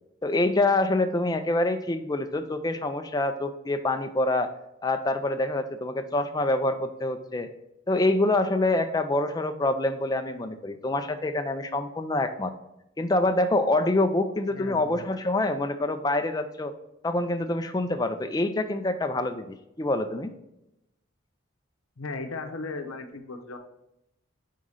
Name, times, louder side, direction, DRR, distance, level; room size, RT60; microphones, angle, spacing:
voice 1, 0.2-4.5 4.8-7.5 7.9-12.5 13.0-16.7 17.0-20.3, left 2 dB, 20° left, 8 dB, 0.4 m, -26 dB
voice 2, 14.5-15.0 22.0-23.6, left 3 dB, 85° left, 6 dB, 0.7 m, -36 dB
4.9 x 3.7 x 5.5 m, 0.86 s
head